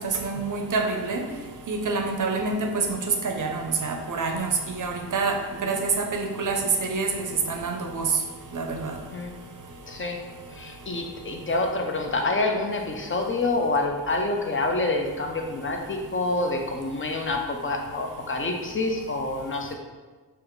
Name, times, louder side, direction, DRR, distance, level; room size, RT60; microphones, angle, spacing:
voice 1, 0.2-1.2 1.7-3.0 3.2-5.3 5.6-6.6 6.8-8.0 8.5-8.9, right 4 dB, 50° right, 3 dB, 0.5 m, -27 dB
voice 2, 9.9-10.2 10.5-19.7, left 2 dB, 30° left, 3 dB, 0.4 m, -27 dB
4.9 x 2.5 x 3.0 m, 1.3 s
wide cardioid pair, 105°, 42 cm